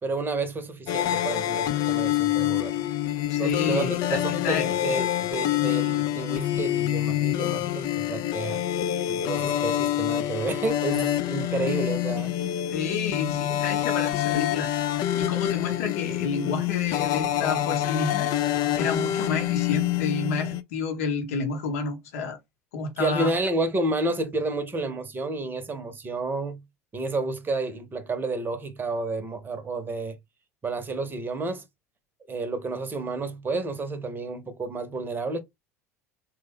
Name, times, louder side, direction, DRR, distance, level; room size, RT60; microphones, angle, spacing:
voice 1, 0.0-2.9 3.4-8.6 9.1-12.3 23.0-26.6 26.9-30.2 30.6-31.6 32.3-35.4, right 2 dB, 25° right, 0.8 m, -30 dB
sound 1, 0.9-20.6, left 12 dB, 50° left, 0.4 m, -26 dB
voice 2, 3.3-4.9 12.7-14.7 15.2-18.3 18.8-22.4 22.7-23.4, left 4 dB, 65° left, 0.8 m, -30 dB
3.2 x 2.2 x 3.5 m
figure-of-eight pair, 70°, 9 cm